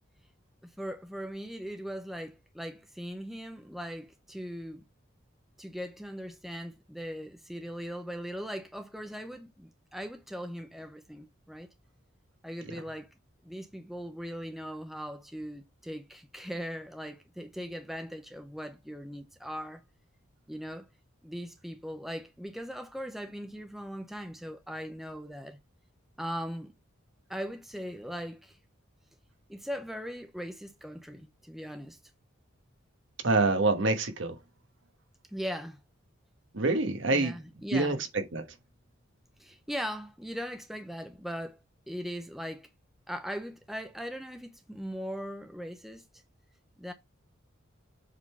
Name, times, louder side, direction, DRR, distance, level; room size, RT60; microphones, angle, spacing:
voice 1, 0.6-4.8 5.6-11.7 12.4-13.1 13.4-19.8 20.5-20.9 21.2-25.6 26.2-26.7 27.3-28.6 29.5-32.0 35.3-35.8 37.1-38.0 39.4-41.6 41.9-42.7 43.1-46.0 46.8-46.9, equal, ahead, 0.6 m, -39 dB
voice 2, 33.2-34.4 36.5-37.4 37.7-38.4, right 3 dB, 65° right, 1.2 m, -26 dB
7.4 x 3.7 x 4.4 m
head